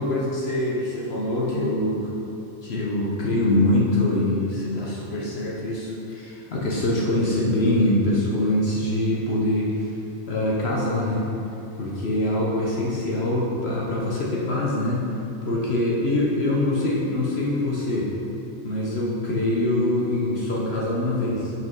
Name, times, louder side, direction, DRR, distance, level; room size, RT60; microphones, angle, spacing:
voice 1, 0.0-2.1 2.6-10.0 10.3-11.3 11.8-15.1 15.4-18.1 18.6-21.5, left 1 dB, 60° left, -4 dB, 1.2 m, -24 dB
6.0 x 5.5 x 5.3 m, 2.8 s
omnidirectional pair, 1.3 m